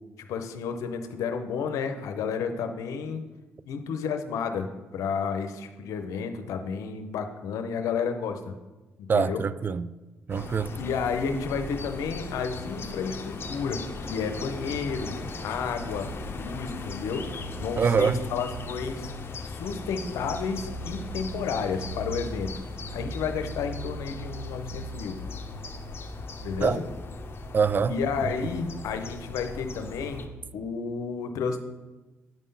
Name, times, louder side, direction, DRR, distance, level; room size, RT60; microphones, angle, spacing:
voice 1, 0.2-3.2 3.7-8.4 9.1-9.4 10.8-15.2 15.4-17.3 17.6-19.1 19.4-22.5 22.9-25.2 26.4-26.8 27.9-30.2 30.5-31.6, left 6 dB, 85° left, 0.7 m, -31 dB
voice 2, 9.1-9.9 10.3-10.8 17.8-18.2 26.6-26.8 27.5-28.0, right 6 dB, 40° right, 0.3 m, -24 dB
sound 1, 10.3-30.3, left 2 dB, 45° left, 0.9 m, -37 dB
9.2 x 3.7 x 5.5 m
cardioid pair, 70°, 5 cm